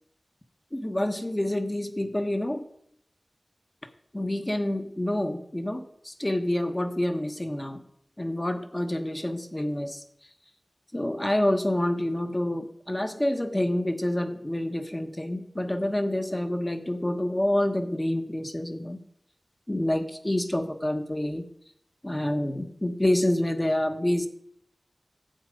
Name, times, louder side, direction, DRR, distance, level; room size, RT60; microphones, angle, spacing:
voice 1, 0.7-2.6 4.1-7.8 8.2-10.0 10.9-19.0 19.7-21.5 22.0-24.3, left 1 dB, 25° left, 7 dB, 1.2 m, -27 dB
11.5 x 8.1 x 5.2 m, 0.70 s
wide cardioid pair, 60°, 0 cm